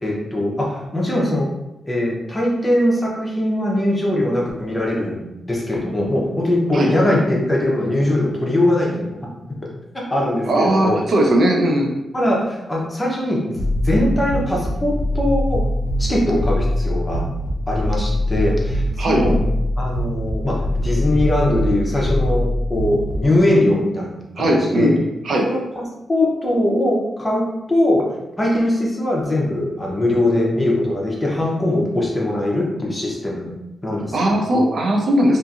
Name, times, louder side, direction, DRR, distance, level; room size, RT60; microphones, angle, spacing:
voice 1, 0.0-1.5 1.8-9.2 9.9-11.0 12.1-13.6 13.8-15.6 16.0-17.2 17.7-19.4 19.8-24.2 24.5-24.9 25.4-25.8 26.1-28.0 28.4-33.5 33.8-34.2 34.4-34.6, left 1 dB, 20° left, -3 dB, 0.7 m, -21 dB
voice 2, 10.5-11.9 19.0-19.2 24.4-24.9 25.2-25.5 34.1-35.4, right 1 dB, 60° right, 0 dB, 0.5 m, -18 dB
sound 1, 13.6-23.3, left 1 dB, 65° left, 0.4 m, -22 dB
2.7 x 2.5 x 2.4 m, 0.93 s
cardioid pair, 100°, 0 cm